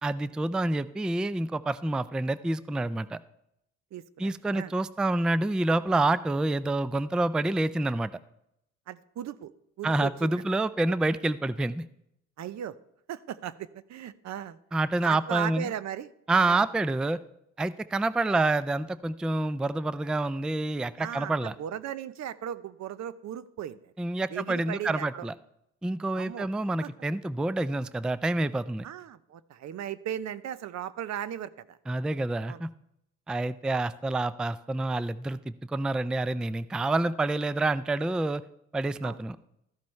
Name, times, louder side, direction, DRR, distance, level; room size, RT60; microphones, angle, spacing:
voice 1, 0.0-3.2 4.2-8.1 9.8-11.8 14.7-15.7 16.3-17.2 17.6-21.5 24.0-25.3 25.8-28.9 31.9-32.7 33.3-38.4 38.7-39.4, right 2 dB, 5° right, 15 dB, 0.3 m, -28 dB
voice 2, 3.9-4.7 8.9-9.5 9.8-10.4 12.4-12.7 13.1-14.6 15.0-16.1 16.4-16.6 21.0-23.9 24.3-25.3 26.1-26.5 26.8-26.9 28.8-31.8 32.5-32.6 39.0-39.2, right 10 dB, 65° right, 16 dB, 0.6 m, -37 dB
13.5 x 11.5 x 3.2 m, 0.79 s
cardioid pair, 90°, 30 cm